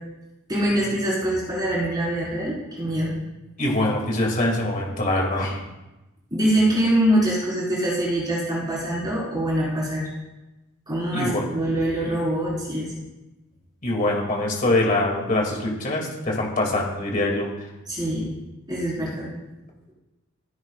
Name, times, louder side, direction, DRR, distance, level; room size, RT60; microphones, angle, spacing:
voice 1, 0.5-3.1 6.3-10.1 10.9-12.9 17.9-18.3 18.7-19.3, right 1 dB, 20° right, -7 dB, 4.6 m, -24 dB
voice 2, 3.6-5.6 11.1-11.4 13.8-17.5, left 1 dB, 40° left, -1 dB, 2.5 m, -23 dB
16.0 x 13.0 x 2.4 m, 1.0 s
head